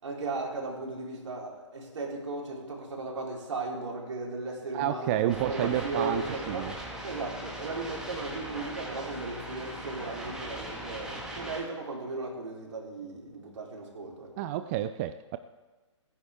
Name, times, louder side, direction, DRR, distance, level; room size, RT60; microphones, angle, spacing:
voice 1, 0.0-6.7 7.0-14.3, right 3 dB, 70° right, -1 dB, 3.9 m, -36 dB
voice 2, 4.7-6.7 14.4-15.4, right 12 dB, 25° right, 11 dB, 0.4 m, -30 dB
sound 1, 5.3-11.6, equal, 5° right, 2.8 m, -40 dB
28.5 x 10.0 x 3.6 m, 1.2 s
hypercardioid pair, 135°, 16 cm